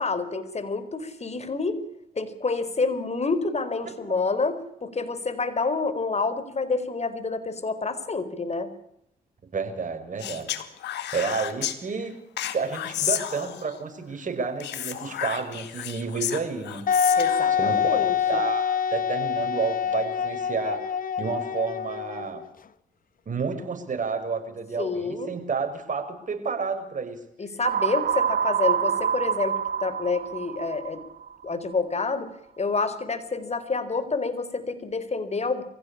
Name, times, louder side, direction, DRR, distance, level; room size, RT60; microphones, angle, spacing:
voice 1, 0.0-1.8 2.2-8.7 17.2-18.4 24.8-25.3 27.4-31.0 31.4-32.3 32.6-35.6, left 4 dB, 40° left, 12 dB, 4.4 m, -28 dB
voice 2, 3.9-4.3 9.5-10.5 11.1-12.2 12.5-16.8 17.5-20.8 21.2-22.4 23.3-27.2, right 5 dB, 45° right, 6 dB, 5.9 m, -30 dB
Speech, 10.2-11.8 12.4-13.8 14.6-17.5, left 12 dB, 80° left, 2.3 m, -32 dB
Wind instrument woodwind instrument, 16.9-22.5, left 7 dB, 55° left, 1.2 m, -25 dB
sound 1, 27.6-31.5, right 7 dB, 65° right, 1.6 m, -26 dB
24.0 x 16.5 x 8.7 m, 0.77 s
supercardioid pair, 55°, 18 cm